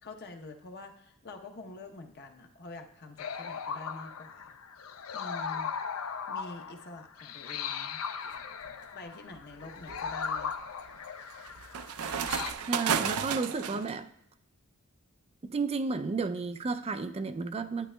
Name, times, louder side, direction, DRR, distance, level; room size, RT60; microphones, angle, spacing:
voice 1, 0.0-4.6 5.1-5.7 6.3-8.3 8.9-10.6, left 3 dB, 50° left, 5 dB, 0.8 m, -46 dB
sound 1, 3.2-12.5, left 6 dB, 80° left, 0.5 m, -38 dB
sound 2, 8.4-8.7 9.3-13.9, right 7 dB, 85° right, 0.5 m, -33 dB
voice 2, 12.6-14.1 15.4-17.9, right 4 dB, 30° right, 9 dB, 0.3 m, -32 dB
11.5 x 9.2 x 2.2 m, 0.73 s
head